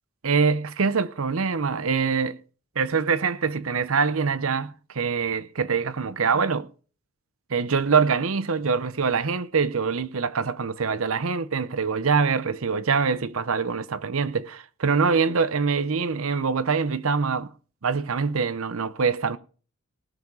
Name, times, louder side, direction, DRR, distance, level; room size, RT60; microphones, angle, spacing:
voice 1, 0.2-2.4 2.8-6.7 7.5-17.5 17.8-19.4, right 5 dB, 75° right, 0.7 m, -24 dB
18.5 x 7.2 x 4.8 m
head